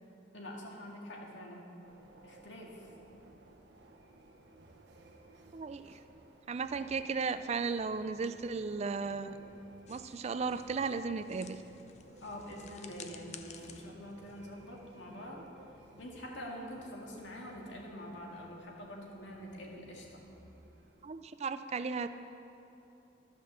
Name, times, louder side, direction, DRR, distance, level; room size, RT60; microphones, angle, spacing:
voice 1, 0.3-1.6 2.2-2.7 12.2-15.4 16.0-20.2, equal, 80° left, -1 dB, 1.9 m, -45 dB
sound 1, 1.8-21.0, right 1 dB, 65° right, 1.0 m, -58 dB
voice 2, 5.5-6.0 6.5-9.4 9.9-11.6 21.0-22.1, right 4 dB, 35° right, 12 dB, 0.4 m, -35 dB
sound 2, 9.9-15.1, left 7 dB, 40° left, 0.5 m, -54 dB
12.5 x 6.0 x 6.9 m, 2.9 s
head